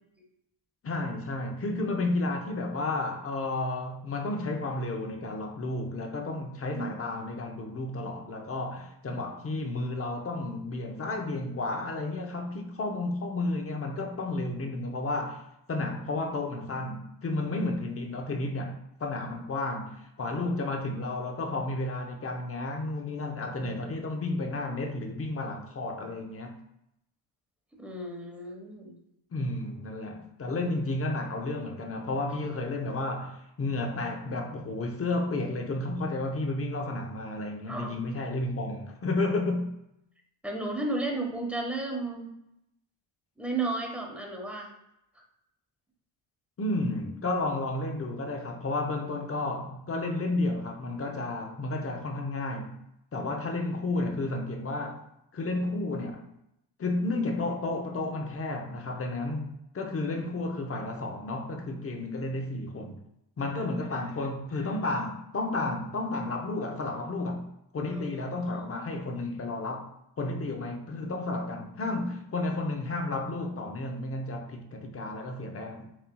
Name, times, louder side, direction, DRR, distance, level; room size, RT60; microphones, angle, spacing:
voice 1, 0.8-15.4 15.7-26.5 29.3-39.8 46.6-52.8 53.1-55.0 55.3-56.3 56.8-63.0 63.4-69.9 70.2-75.8, left 2 dB, 30° left, 0.8 m, -32 dB
voice 2, 27.7-28.9 37.7-38.0 40.4-42.3 43.4-44.7 53.1-53.4 67.8-68.7, right 2 dB, 5° right, 1.1 m, -34 dB
7.4 x 2.8 x 2.3 m
cardioid pair, 90°, 48 cm